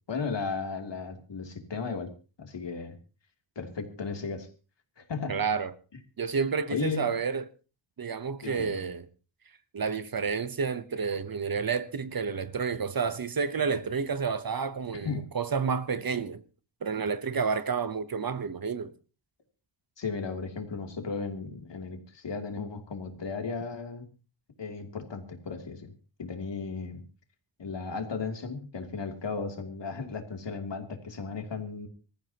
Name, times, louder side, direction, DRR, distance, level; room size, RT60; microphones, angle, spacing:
voice 1, 0.1-2.1 2.4-2.9 3.6-4.5 5.0-5.4 6.7-7.1 8.4-8.8 15.0-15.2 20.0-24.1 24.6-25.9 26.2-27.0 27.6-31.9, left 4 dB, 65° left, 3.0 m, -35 dB
voice 2, 5.3-5.7 6.2-7.4 8.0-9.1 9.7-16.4 16.8-18.9, right 5 dB, 50° right, 0.9 m, -30 dB
25.5 x 14.5 x 2.9 m
wide cardioid pair, 125°, 46 cm